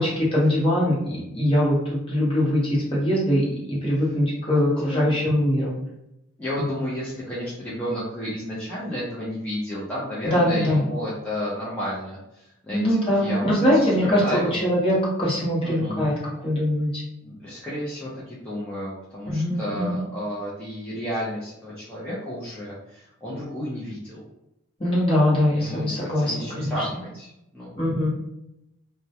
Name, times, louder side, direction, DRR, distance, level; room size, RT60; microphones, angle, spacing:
voice 1, 0.0-1.8 2.1-5.7 10.2-10.8 12.7-16.1 16.4-16.9 19.3-20.0 24.8-26.9 27.8-28.1, left 1 dB, 25° left, -6 dB, 0.9 m, -22 dB
voice 2, 6.4-14.6 15.6-16.0 17.2-24.2 25.5-27.7, equal, 5° left, -10 dB, 0.5 m, -32 dB
2.1 x 2.1 x 2.7 m, 0.86 s
head